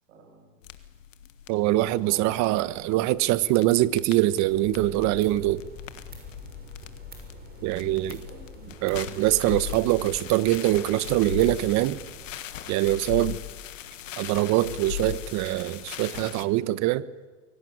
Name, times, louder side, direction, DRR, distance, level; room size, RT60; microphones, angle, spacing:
voice 1, 0.1-0.6 1.7-3.7 7.9-8.7 9.0-9.2, right 3 dB, 80° right, 3 dB, 7.5 m, -50 dB
sound 1, 0.6-16.4, left 12 dB, 85° left, 1.6 m, -39 dB
voice 2, 1.5-5.6 7.6-8.2 8.8-12.0 12.7-13.4 14.2-17.1, right 16 dB, 50° right, 17 dB, 1.1 m, -23 dB
sound 2, 4.4-12.4, right 2 dB, 25° right, 6.7 m, -47 dB
23.0 x 17.5 x 9.6 m, 1.4 s
hypercardioid pair, 105°, 38 cm